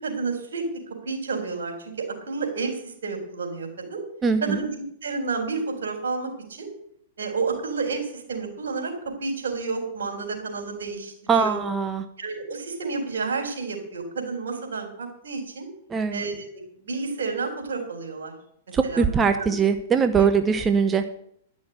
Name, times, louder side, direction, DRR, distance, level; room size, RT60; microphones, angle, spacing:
voice 1, 0.0-4.0 4.4-6.7 7.2-8.9 9.2-11.6 12.2-15.7 16.1-18.3 18.8-19.0 19.3-19.5 20.2-20.3, right 4 dB, 80° right, 3 dB, 4.0 m, -30 dB
voice 2, 4.2-4.6 11.3-12.0 15.9-16.2 18.7-21.2, right 6 dB, 20° right, 9 dB, 0.8 m, -22 dB
11.5 x 6.3 x 8.9 m, 0.69 s
hypercardioid pair, 115°, 0 cm